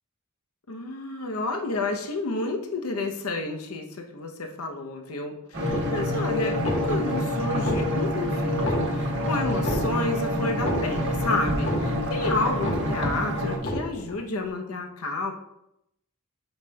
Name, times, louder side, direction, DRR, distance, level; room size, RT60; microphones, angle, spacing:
voice 1, 0.7-15.3, left 2 dB, 75° left, 3 dB, 0.8 m, -30 dB
sound 1, 5.5-13.6, equal, 60° right, 1.2 m, -27 dB
sound 2, 5.7-6.2 6.5-7.2 7.5-8.2 8.5-9.2 9.5-10.2 10.5-11.2 11.5-12.2 12.5-13.2 13.5-14.2, left 1 dB, 55° left, 1.3 m, -31 dB
7.9 x 5.2 x 2.3 m, 0.80 s
head